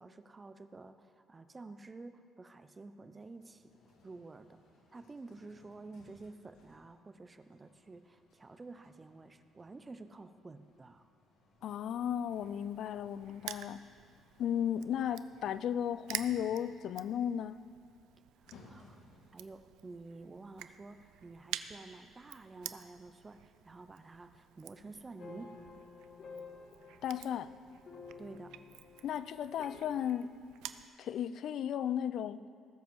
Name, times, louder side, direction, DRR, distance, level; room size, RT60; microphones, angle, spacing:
voice 1, 0.0-3.7 4.0-4.6 4.9-11.1 18.4-19.0 19.3-25.6 28.2-28.6, right 3 dB, 20° right, 10 dB, 0.5 m, -50 dB
sound 1, 3.2-19.6, left 3 dB, 75° left, 1.9 m, -64 dB
voice 2, 11.6-13.8 14.4-17.6 27.0-27.5 29.0-30.3 31.0-32.4, left 9 dB, 60° left, 15 dB, 0.4 m, -35 dB
Crushing, 12.3-30.9, right 12 dB, 85° right, 0.4 m, -49 dB
sound 2, 25.2-30.2, left 4 dB, 40° left, 1.4 m, -52 dB
18.5 x 7.3 x 4.6 m, 2.2 s
cardioid pair, 145°, 0 cm